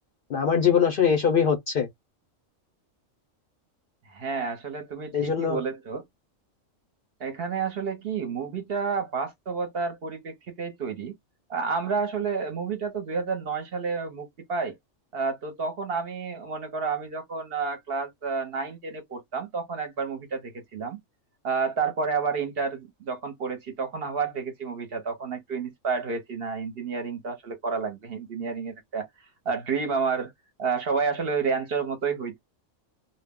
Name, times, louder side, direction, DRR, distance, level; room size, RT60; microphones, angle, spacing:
voice 1, 0.3-1.9 5.1-5.6, left 7 dB, 60° left, 0.6 m, -22 dB
voice 2, 4.1-6.0 7.2-11.1 11.5-14.8 15.1-21.0 21.4-29.1 29.5-30.3 30.6-32.4, right 5 dB, 55° right, 0.8 m, -30 dB
2.2 x 2.0 x 3.4 m
omnidirectional pair, 1.3 m